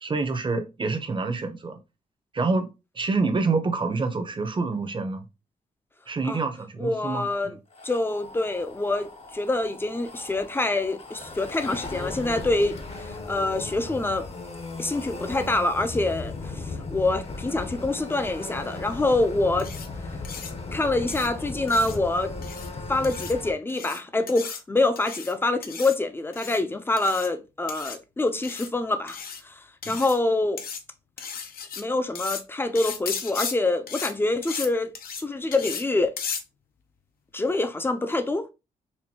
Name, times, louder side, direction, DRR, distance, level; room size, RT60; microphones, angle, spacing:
voice 1, 0.0-1.8 2.3-2.7 2.9-5.2 6.1-7.3 29.8-30.0, right 3 dB, 30° right, 0.7 m, -27 dB
voice 2, 6.8-7.5 7.8-14.3 14.8-19.7 20.7-22.3 22.9-29.2 29.4-29.5 29.9-30.6 31.8-34.9 35.2-36.1 37.3-38.5, left 2 dB, 15° left, 0.5 m, -26 dB
sound 1, 7.7-23.5, left 3 dB, 40° left, 0.8 m, -37 dB
sound 2, 19.6-19.9 20.2-20.5 21.1-21.3 21.7-22.0 22.4-22.7 23.0-23.3 23.7-24.0 24.3-24.6 25.0-25.3 25.6-26.0 26.3-26.6 27.0-27.3 27.7-28.0 28.4-28.7 29.1-29.4 29.8-30.2 30.6-30.8 31.2-31.8 32.2-32.4 32.8-33.5 33.9-34.1 34.4-34.7 34.9-35.2 35.5-35.8 36.2-36.4, left 6 dB, 75° left, 0.6 m, -35 dB
4.3 x 2.6 x 2.8 m
cardioid pair, 90°, 15 cm